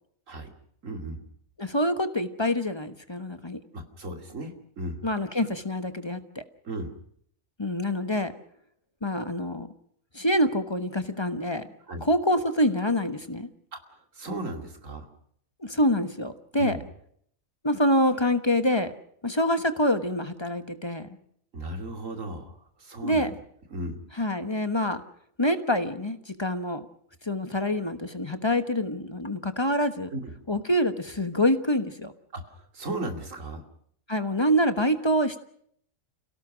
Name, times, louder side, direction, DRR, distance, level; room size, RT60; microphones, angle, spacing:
voice 1, 0.8-1.2 3.7-5.0 6.6-6.9 11.9-12.1 13.7-15.1 16.6-16.8 21.5-23.3 23.7-24.0 30.1-30.3 32.3-33.6, right 1 dB, 70° right, 5 dB, 3.0 m, -36 dB
voice 2, 1.6-3.6 5.0-6.4 7.6-8.3 9.0-9.7 10.1-11.6 12.0-13.5 15.6-16.8 17.6-18.9 19.2-21.1 23.0-23.3 24.2-25.0 25.4-26.8 27.2-30.1 30.5-32.1 34.1-35.4, equal, 20° left, 9 dB, 1.2 m, -26 dB
29.0 x 17.5 x 6.3 m, 0.66 s
omnidirectional pair, 1.4 m